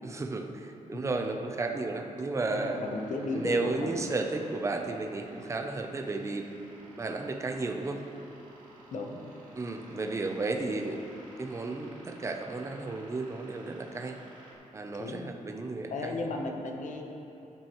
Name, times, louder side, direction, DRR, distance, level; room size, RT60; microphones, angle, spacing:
voice 1, 0.0-2.8 3.3-6.5 7.0-8.0 9.6-11.0 11.4-14.2 14.7-16.3, right 3 dB, 20° right, 4 dB, 0.6 m, -33 dB
sound 1, 2.4-14.5, right 2 dB, 80° right, 1.9 m, -54 dB
voice 2, 2.5-3.9 8.9-9.4 15.0-15.3 15.6-17.0, left 3 dB, 70° left, 2 dB, 1.0 m, -35 dB
15.0 x 7.4 x 3.1 m, 2.9 s
wide cardioid pair, 160°, 13 cm